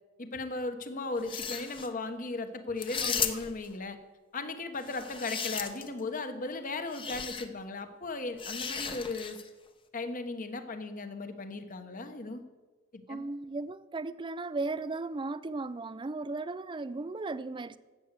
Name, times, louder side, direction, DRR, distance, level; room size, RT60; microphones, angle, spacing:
voice 1, 0.2-4.0 4.3-9.4 9.9-12.4 12.9-13.2, left 3 dB, 45° left, 1.2 m, -37 dB
sound 1, 1.2-1.9 2.8-3.7 4.8-6.0 6.9-7.5 8.4-9.5, left 6 dB, 25° left, 0.9 m, -35 dB
voice 2, 3.0-3.4 13.1-17.8, right 3 dB, 25° right, 0.5 m, -36 dB
12.0 x 8.0 x 8.2 m
head